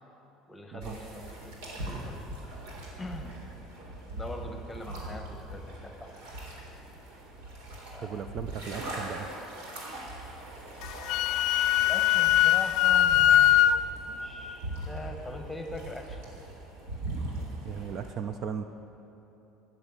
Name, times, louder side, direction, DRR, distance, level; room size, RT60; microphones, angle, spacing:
voice 1, 0.5-2.2 3.0-3.4 4.1-6.1 7.9-8.3 11.8-13.6 14.1-16.3, left 2 dB, 5° left, 4 dB, 1.2 m, -42 dB
sound 1, 0.8-18.1, right 1 dB, 85° right, 3.6 m, -41 dB
voice 2, 8.0-9.3 17.6-18.6, right 7 dB, 45° right, 9 dB, 0.5 m, -36 dB
Wind instrument woodwind instrument, 10.8-13.8, left 12 dB, 65° left, 0.3 m, -21 dB
15.0 x 7.6 x 7.4 m, 3.0 s
cardioid pair, 135°, 0 cm